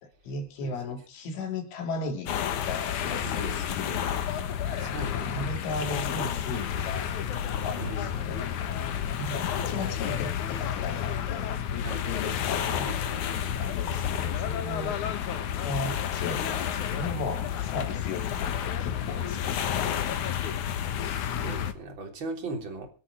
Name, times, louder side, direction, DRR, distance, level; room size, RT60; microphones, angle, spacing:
voice 1, 0.0-4.1 4.8-7.1 7.6-11.2 12.1-13.0 13.6-15.0 15.6-19.8, left 3 dB, 85° left, 5 dB, 5.3 m, -36 dB
sound 1, 2.3-21.7, left 9 dB, 65° left, 2.0 m, -30 dB
voice 2, 3.2-3.7 4.7-6.3 7.8-8.1 11.8-12.4 12.7-13.3 21.0-22.9, right 2 dB, 25° right, 3 dB, 3.7 m, -39 dB
24.0 x 9.0 x 4.8 m, 0.38 s
omnidirectional pair, 5.4 m